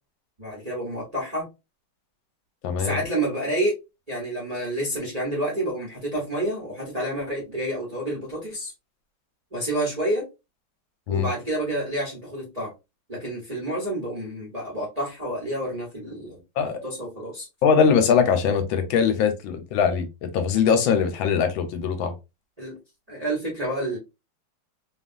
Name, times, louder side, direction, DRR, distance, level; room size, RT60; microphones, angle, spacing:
voice 1, 0.4-1.5 2.8-3.8 4.1-8.7 9.5-10.3 11.1-12.7 13.1-16.4 16.8-17.5 22.6-22.8 23.1-24.0, right 1 dB, 30° right, 0.8 m, -29 dB
voice 2, 2.6-3.0 11.1-11.3 16.6-16.8 17.6-22.1, left 6 dB, 80° left, 1.4 m, -21 dB
3.3 x 2.4 x 2.4 m
omnidirectional pair, 2.2 m